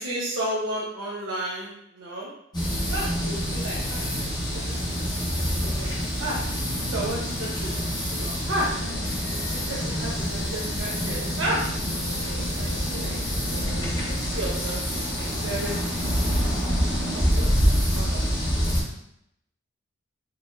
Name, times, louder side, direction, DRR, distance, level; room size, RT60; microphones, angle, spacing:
voice 1, 0.0-2.3 2.9-4.8 5.2-5.9 6.2-6.4 6.9-7.8 8.1-8.7 9.5-11.7 12.2-13.2 13.5-15.8 16.9-18.8, right 1 dB, 80° right, -6 dB, 0.7 m, -33 dB
sound 1, 2.5-18.8, equal, 20° left, 0.7 m, -26 dB
sound 2, 8.7-14.2, left 1 dB, 85° left, 0.8 m, -38 dB
3.9 x 2.9 x 2.5 m, 0.77 s
head